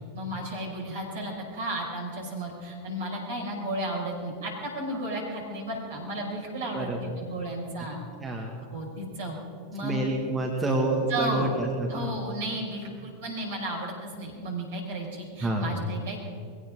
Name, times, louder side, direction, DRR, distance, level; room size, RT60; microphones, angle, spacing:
voice 1, 0.1-8.0 8.7-9.4 9.7-10.0 11.1-11.5 11.9-16.3, right 1 dB, 60° right, -2 dB, 5.7 m, -33 dB
voice 2, 8.2-8.6 9.8-12.2 15.4-15.7, right 2 dB, 15° right, 0 dB, 2.0 m, -28 dB
22.0 x 17.5 x 3.8 m, 2.3 s
figure-of-eight pair, 90°, 0 cm